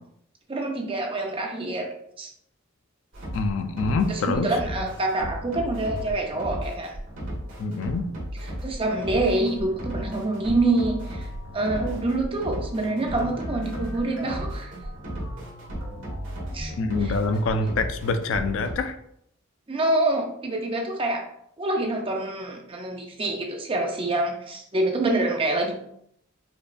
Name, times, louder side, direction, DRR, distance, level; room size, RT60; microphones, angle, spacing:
voice 1, 0.5-1.9 2.2-2.3 4.1-6.9 8.6-11.3 11.5-14.7 16.5-16.7 19.7-21.2 21.6-25.7, right 2 dB, 25° right, 2 dB, 0.5 m, -26 dB
sound 1, 3.1-18.7, equal, 70° right, 1.4 m, -34 dB
voice 2, 3.3-4.5 7.6-8.1 16.8-19.0, left 3 dB, 65° left, 8 dB, 0.3 m, -25 dB
5.1 x 2.3 x 2.4 m, 0.72 s
head